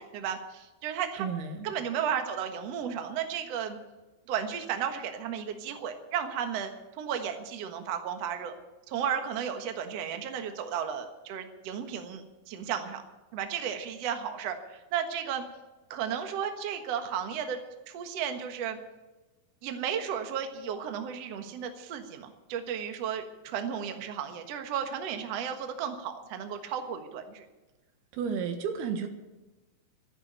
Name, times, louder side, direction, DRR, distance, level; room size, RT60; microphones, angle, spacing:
voice 1, 0.0-1.3 1.6-3.8 4.3-6.7 7.0-8.6 8.9-13.0 13.3-15.4 15.9-17.6 17.9-18.8 19.6-27.4, right 8 dB, 55° right, 6 dB, 2.0 m, -34 dB
voice 2, 1.2-1.7 28.1-29.1, right 6 dB, 85° right, 6 dB, 3.5 m, -32 dB
13.0 x 11.0 x 8.8 m, 1.1 s
omnidirectional pair, 4.4 m